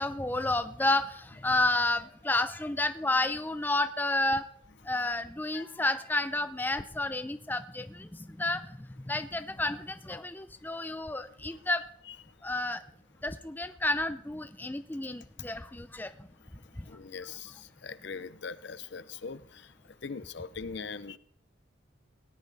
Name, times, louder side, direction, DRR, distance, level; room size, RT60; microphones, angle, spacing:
voice 1, 0.0-4.5 4.9-8.1 8.4-8.6 9.1-11.8 12.4-12.8 13.2-16.1, left 2 dB, 10° left, 11 dB, 0.4 m, -30 dB
voice 2, 16.9-19.7 20.0-21.2, left 5 dB, 55° left, 15 dB, 0.6 m, -41 dB
18.0 x 10.5 x 4.0 m, 0.66 s
head